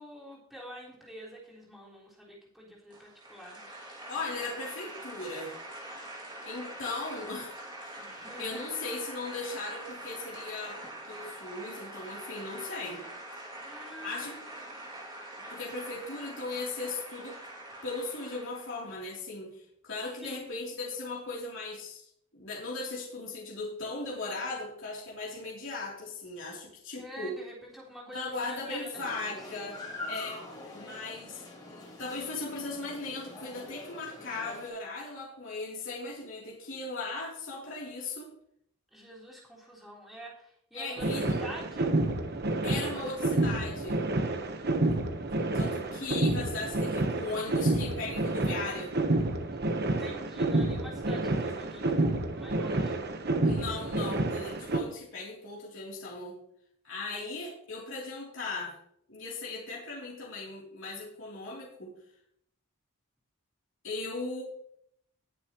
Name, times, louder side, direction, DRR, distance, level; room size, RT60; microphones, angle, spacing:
voice 1, 0.0-3.7 8.0-8.7 13.6-14.9 15.5-15.9 20.2-20.4 26.9-29.6 38.9-41.9 49.8-53.0, equal, ahead, -6 dB, 3.7 m, -47 dB
sound 1, 2.9-19.0, right 1 dB, 20° right, 2.4 m, -44 dB
voice 2, 4.1-5.5 6.4-8.0 8.4-10.8 11.1-13.0 14.0-14.4 15.5-17.4 17.8-27.4 28.1-30.4 30.7-31.4 31.7-38.3 40.7-41.4 42.6-44.0 44.9-45.0 45.5-48.9 53.4-56.4 56.8-58.7 59.1-61.9 63.8-64.4, left 3 dB, 60° left, -5 dB, 3.2 m, -38 dB
sound 2, 28.9-34.7, left 2 dB, 20° left, 3.5 m, -44 dB
sound 3, 41.0-54.8, right 2 dB, 45° right, 1.1 m, -29 dB
19.5 x 7.0 x 3.1 m, 0.70 s
head